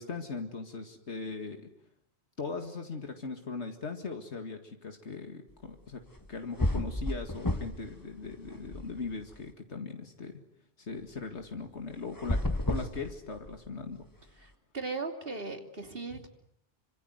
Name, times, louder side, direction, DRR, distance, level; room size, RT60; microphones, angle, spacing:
voice 1, 0.0-1.7 2.4-6.0 6.3-10.4 10.8-12.4 12.7-14.0 16.1-16.2, left 4 dB, 80° left, 5 dB, 2.4 m, -39 dB
sound 1, 6.2-6.3 6.6-7.9 8.2-9.3 12.1-13.7, left 1 dB, 20° left, 1.5 m, -31 dB
voice 2, 14.4-16.3, right 3 dB, 55° right, 5 dB, 3.2 m, -38 dB
27.0 x 25.0 x 8.0 m, 0.70 s
omnidirectional pair, 1.1 m